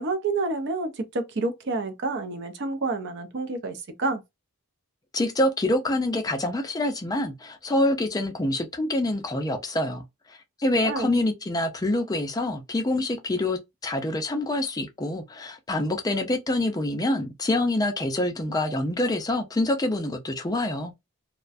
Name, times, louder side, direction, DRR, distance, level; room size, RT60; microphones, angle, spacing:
voice 1, 0.0-4.2 10.8-11.1, right 3 dB, 50° right, 0.5 m, -29 dB
voice 2, 5.1-10.0 10.3-20.9, left 1 dB, 15° left, 0.4 m, -26 dB
2.4 x 2.2 x 2.4 m
head